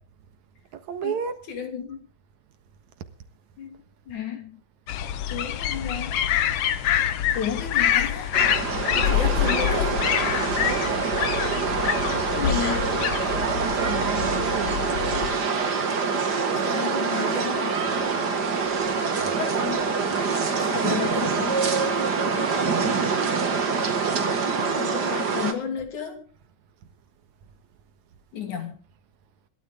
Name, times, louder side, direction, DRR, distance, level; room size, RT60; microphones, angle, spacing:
voice 1, 0.7-1.3 10.6-10.9 13.3-14.8 19.2-19.4, right 8 dB, 75° right, 2.8 m, -32 dB
voice 2, 1.5-2.0 3.6-4.6 5.3-6.2 7.3-8.4 8.9-10.0 12.2-12.9 16.6-17.9 19.4-19.9 20.5-21.6 24.5-26.2 28.3-28.8, left 7 dB, 80° left, 4.5 m, -32 dB
sound 1, 4.9-15.4, left 10 dB, 65° left, 1.8 m, -26 dB
sound 2, 8.3-25.5, right 5 dB, 40° right, 2.2 m, -25 dB
26.5 x 12.5 x 3.7 m
omnidirectional pair, 3.4 m